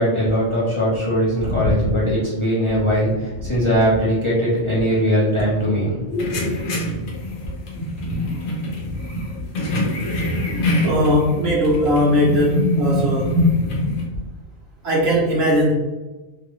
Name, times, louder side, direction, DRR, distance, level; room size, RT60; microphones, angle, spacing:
voice 1, 0.0-6.8, equal, 25° left, -9 dB, 0.8 m, -20 dB
voice 2, 1.4-1.9 3.4-3.5 8.1-8.3 10.8-13.4 14.8-15.7, equal, 55° right, -4 dB, 0.9 m, -19 dB
sound 1, 6.2-14.1, left 1 dB, 75° left, 1.2 m, -24 dB
3.0 x 2.5 x 3.0 m, 1.1 s
omnidirectional pair, 1.4 m